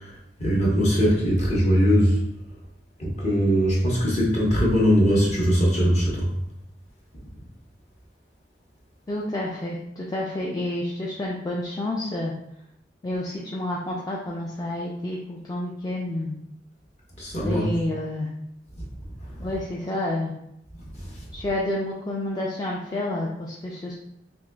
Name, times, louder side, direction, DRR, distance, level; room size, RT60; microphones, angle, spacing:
voice 1, 0.4-2.2 3.0-6.3 17.2-17.6, equal, 40° left, -4 dB, 1.0 m, -20 dB
voice 2, 9.1-12.3 13.0-16.4 17.4-18.3 19.4-20.3 21.3-23.9, left 1 dB, 20° left, -3 dB, 0.3 m, -29 dB
4.0 x 3.0 x 2.2 m, 0.79 s
head